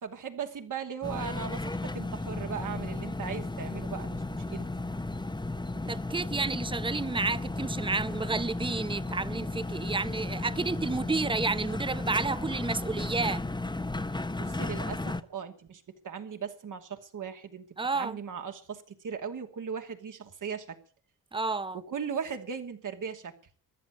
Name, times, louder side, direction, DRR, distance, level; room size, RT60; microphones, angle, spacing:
voice 1, 0.0-4.7 14.4-17.7 17.9-20.8 21.7-23.3, right 6 dB, 55° right, 2.8 m, -38 dB
sound 1, 1.0-15.2, left 2 dB, 10° left, 1.3 m, -34 dB
voice 2, 5.9-13.4 17.8-18.2 21.3-21.8, right 3 dB, 15° right, 0.8 m, -31 dB
15.0 x 11.0 x 8.5 m
supercardioid pair, 60°, 38 cm